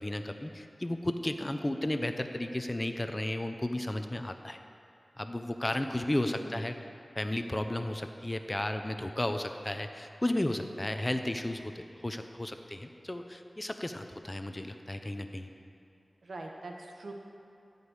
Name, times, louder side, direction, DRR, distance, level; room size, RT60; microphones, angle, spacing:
voice 1, 0.0-4.6 5.2-6.8 7.2-15.5, left 1 dB, 30° left, 7 dB, 0.8 m, -33 dB
voice 2, 16.2-17.1, right 2 dB, 85° right, 1 dB, 1.2 m, -43 dB
14.5 x 5.4 x 8.1 m, 2.7 s
cardioid pair, 45°, 0 cm